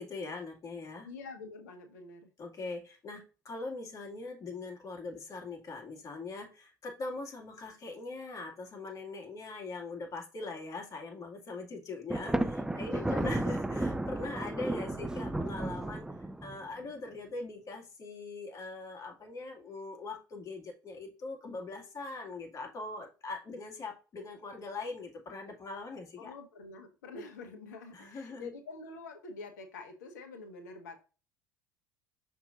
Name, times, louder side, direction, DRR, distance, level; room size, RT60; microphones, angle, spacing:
voice 1, 0.0-1.1 2.4-26.3 27.9-28.5, left 3 dB, 35° left, 1 dB, 2.3 m, -42 dB
voice 2, 1.0-2.3 12.9-13.6 26.2-31.0, left 3 dB, 75° left, 6 dB, 1.3 m, -46 dB
Thunder, 12.1-16.7, right 1 dB, 5° right, 0.5 m, -33 dB
6.1 x 5.9 x 2.6 m, 0.33 s
hypercardioid pair, 70°, 10 cm